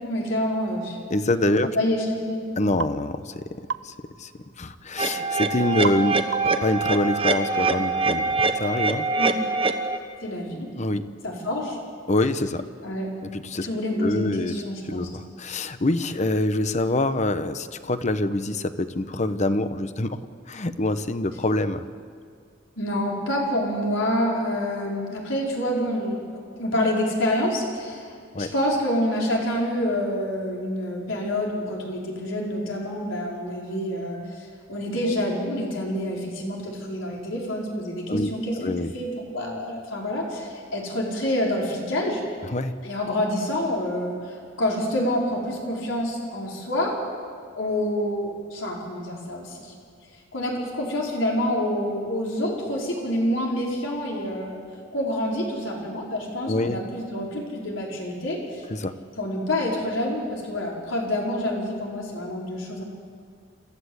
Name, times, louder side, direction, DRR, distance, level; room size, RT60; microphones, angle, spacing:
voice 1, 0.0-1.0 1.6-2.4 9.2-9.5 10.2-10.7 11.2-11.8 12.8-13.1 13.6-15.1 22.8-28.1 28.3-42.2 42.8-46.9 47.5-49.7 50.3-54.6 54.9-58.6 59.2-62.8, left 1 dB, 90° left, -2 dB, 5.0 m, -27 dB
voice 2, 1.1-1.7 2.6-3.5 3.8-4.3 4.6-8.3 8.5-9.1 10.8-11.1 12.1-12.7 13.2-14.6 14.9-21.8 28.3-28.5 38.1-38.9 42.4-42.8 56.5-56.8 58.7-58.9, left 2 dB, 35° left, 11 dB, 0.9 m, -25 dB
sound 1, 2.8-3.0 3.7-3.9 5.8-6.1 6.3-6.7, right 5 dB, 65° right, 0.7 m, -30 dB
sound 2, 5.0-10.0, right 3 dB, 30° right, 1.2 m, -24 dB
28.0 x 14.5 x 8.1 m, 2.2 s
head